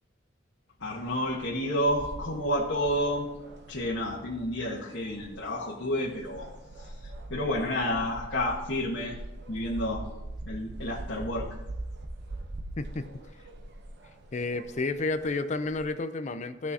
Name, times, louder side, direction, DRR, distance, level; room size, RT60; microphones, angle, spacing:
voice 1, 0.8-3.3 3.7-6.5 6.8-9.1 9.5-10.0 10.4-11.5, left 1 dB, 65° left, -5 dB, 1.3 m, -30 dB
sound 1, 0.8-15.9, right 1 dB, 55° right, 0.8 m, -43 dB
voice 2, 12.8-13.2 14.3-16.7, left 3 dB, 35° left, 10 dB, 0.5 m, -31 dB
14.5 x 6.1 x 2.8 m, 0.98 s
head